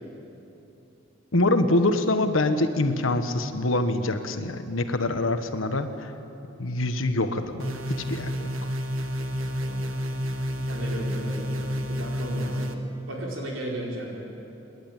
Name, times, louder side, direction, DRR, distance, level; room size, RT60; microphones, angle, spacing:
voice 1, 1.3-6.1 6.6-8.5, left 2 dB, 75° left, 8 dB, 1.3 m, -25 dB
sound 1, 7.6-12.7, equal, 90° right, 1.4 m, -30 dB
voice 2, 10.7-12.7 13.1-14.1, right 1 dB, 75° right, -2 dB, 4.7 m, -35 dB
27.0 x 11.5 x 9.0 m, 2.9 s
head